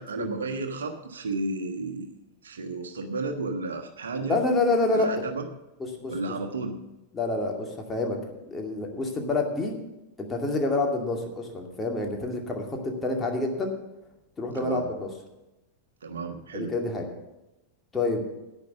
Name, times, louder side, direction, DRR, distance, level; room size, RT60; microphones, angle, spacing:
voice 1, 0.0-2.1 2.4-4.4 4.9-5.5 6.1-6.8 14.5-14.9 16.0-16.7, right 3 dB, 65° right, 4 dB, 1.3 m, -33 dB
voice 2, 4.3-5.1 6.0-6.3 7.1-8.2 8.5-9.8 10.2-13.7 14.4-15.1 16.5-17.0 17.9-18.2, left 2 dB, 15° left, 1 dB, 2.3 m, -27 dB
10.5 x 9.2 x 7.0 m, 0.98 s
figure-of-eight pair, 90°, 0 cm